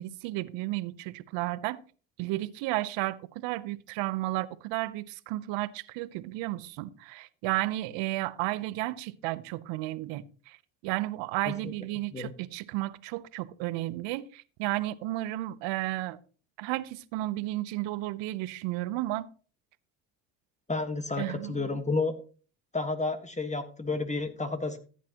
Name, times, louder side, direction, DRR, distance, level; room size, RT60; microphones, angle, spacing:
voice 1, 0.0-1.8 2.2-10.6 10.8-16.2 16.6-19.3 21.2-21.8, right 17 dB, 75° right, 0.8 m, -33 dB
voice 2, 20.7-22.2 22.7-24.8, left 3 dB, 15° left, 1.5 m, -31 dB
14.5 x 8.4 x 3.0 m
supercardioid pair, 70°, 45 cm